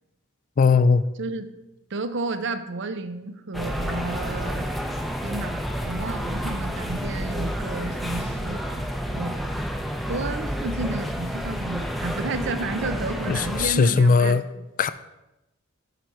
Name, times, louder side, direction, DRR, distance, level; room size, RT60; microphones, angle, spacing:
voice 1, 0.6-1.0 13.3-14.4 14.8-14.9, left 4 dB, 40° left, 0.3 m, -18 dB
voice 2, 1.9-4.7 5.2-8.6 9.1-9.3 10.1-14.7, right 3 dB, 60° right, 0.6 m, -31 dB
sound 1, 3.5-13.7, equal, ahead, 0.6 m, -30 dB
9.1 x 4.5 x 5.4 m
head